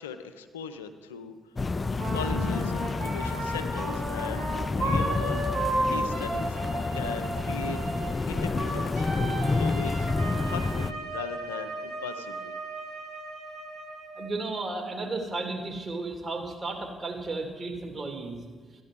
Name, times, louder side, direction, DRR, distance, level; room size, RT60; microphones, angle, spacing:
voice 1, 0.0-1.4 1.7-5.5 5.9-6.6 6.9-7.8 8.3-9.9 10.5-12.5, left 7 dB, 85° left, 9 dB, 0.5 m, -39 dB
sound 1, 1.6-10.9, left 3 dB, 35° left, 0.4 m, -29 dB
Wind instrument woodwind instrument, 1.9-14.4, right 1 dB, 90° right, 3.8 m, -34 dB
voice 2, 14.1-18.4, right 3 dB, 40° right, 3 dB, 2.2 m, -34 dB
13.5 x 10.0 x 3.7 m, 1.4 s
hypercardioid pair, 40°, 0 cm